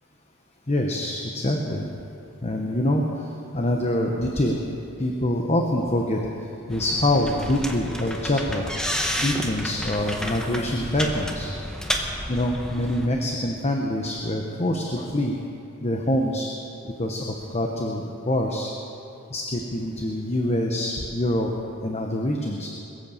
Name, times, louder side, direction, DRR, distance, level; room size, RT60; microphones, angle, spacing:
voice 1, 0.7-1.9 2.4-3.3 3.5-4.6 5.0-6.3 6.7-8.6 9.2-11.5 12.3-15.4 15.8-16.5 16.8-18.7 19.3-21.5 21.8-22.7, left 1 dB, 30° left, 1 dB, 1.0 m, -25 dB
sound 1, 6.7-13.1, equal, 5° left, 1.0 m, -31 dB
21.5 x 8.3 x 7.2 m, 2.7 s
head